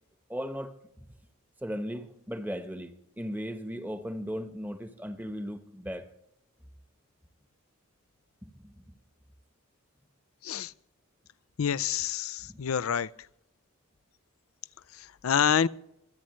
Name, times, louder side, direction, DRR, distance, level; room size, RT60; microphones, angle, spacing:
voice 1, 0.3-1.1 1.6-6.1 8.4-8.8 12.4-12.6, equal, 10° right, 1.1 m, -37 dB
voice 2, 11.6-13.1 15.2-15.7, left 8 dB, 85° left, 0.5 m, -27 dB
26.5 x 9.9 x 3.2 m
head